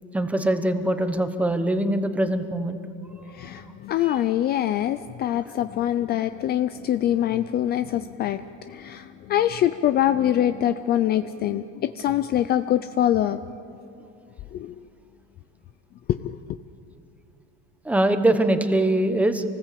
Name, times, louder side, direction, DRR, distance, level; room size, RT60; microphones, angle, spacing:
voice 1, 0.1-2.8 4.0-4.2 17.8-19.4, right 1 dB, 5° right, 8 dB, 1.0 m, -22 dB
voice 2, 3.3-8.4 8.7-13.4 14.5-14.7 16.2-16.6, left 11 dB, 35° left, 11 dB, 0.5 m, -24 dB
27.5 x 19.5 x 8.4 m, 2.8 s
cardioid pair, 165°, 30 cm